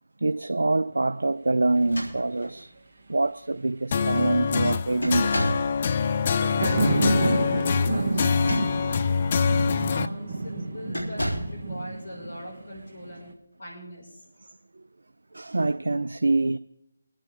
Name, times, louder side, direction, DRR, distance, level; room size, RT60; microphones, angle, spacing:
voice 1, 0.2-2.7 3.1-5.5 15.3-16.6, right 2 dB, 70° right, 0.4 m, -25 dB
sound 1, 1.7-2.7 3.5-3.6 4.0-4.4 5.0-5.8 8.2-9.0 9.6-9.8 10.9-11.6, equal, 80° left, 3.4 m, -33 dB
sound 2, 3.9-10.1, left 5 dB, 35° left, 0.5 m, -25 dB
sound 3, 6.2-13.3, right 2 dB, 45° right, 2.3 m, -29 dB
voice 2, 6.4-9.2 9.6-14.3, equal, 60° left, 5.8 m, -41 dB
24.0 x 9.0 x 3.7 m
figure-of-eight pair, 155°, 0 cm